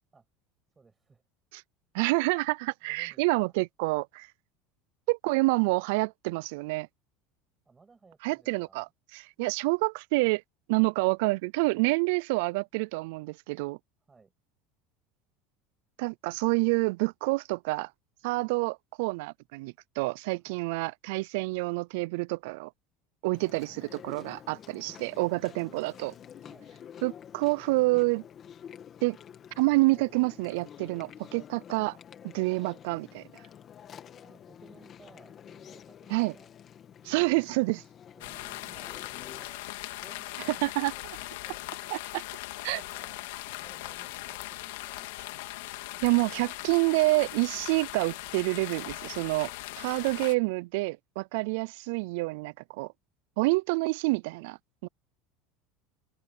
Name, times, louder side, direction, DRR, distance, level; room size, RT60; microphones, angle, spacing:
voice 1, 0.7-1.2 2.8-3.6 7.6-8.9 14.0-14.3 18.3-18.4 20.4-20.6 25.4-25.7 26.4-26.7 34.2-36.5 38.1-39.6 39.9-42.0 42.7-45.1 51.4-51.5, right 4 dB, 15° right, 7.9 m, -58 dB
voice 2, 1.9-4.3 5.1-6.9 8.2-10.4 10.7-13.8 16.0-17.9 18.2-22.7 23.2-26.1 27.0-28.2 29.0-29.2 29.6-32.0 32.2-33.2 36.1-36.3 37.0-37.8 40.5-40.9 41.9-42.2 42.6-42.8 46.0-49.5 49.8-52.9 53.4-54.9, right 25 dB, 75° right, 0.3 m, -28 dB
Chewing mastication, 23.3-39.4, left 9 dB, 30° left, 2.2 m, -49 dB
sound 1, 38.2-50.4, left 18 dB, 90° left, 2.2 m, -40 dB
supercardioid pair, 150°, 0 cm